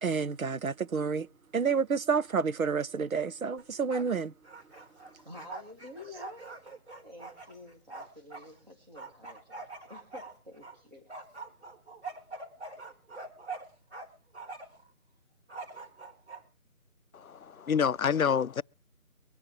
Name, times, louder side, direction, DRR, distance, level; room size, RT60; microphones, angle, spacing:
voice 1, 0.0-1.3 1.5-4.3, right 5 dB, 70° right, 0.7 m, -29 dB
Bark, 3.6-4.2 4.4-8.5 9.0-10.8 11.1-14.1 14.3-14.8 15.5-16.4, right 3 dB, 50° right, 4.0 m, -43 dB
voice 2, 5.1-11.1, left 2 dB, 30° right, 2.3 m, -50 dB
voice 3, 17.1-18.6, left 7 dB, 70° left, 0.6 m, -27 dB
23.5 x 10.5 x 3.0 m
figure-of-eight pair, 180°, 44 cm